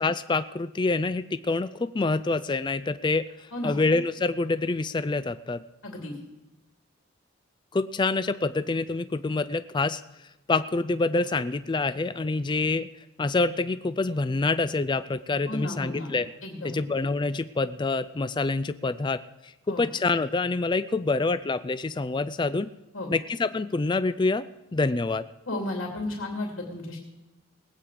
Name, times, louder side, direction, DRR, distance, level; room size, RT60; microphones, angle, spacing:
voice 1, 0.0-3.3 3.6-5.6 7.7-10.0 10.5-12.9 13.2-16.3 16.6-19.2 19.7-22.7 23.1-24.4 24.7-25.3, left 3 dB, 20° left, 13 dB, 0.4 m, -26 dB
voice 2, 5.8-6.1 15.5-16.1 16.4-16.8 19.7-19.8 22.9-23.1 25.5-27.0, left 1 dB, 75° left, 0 dB, 2.8 m, -33 dB
20.0 x 8.7 x 4.9 m, 1.0 s
head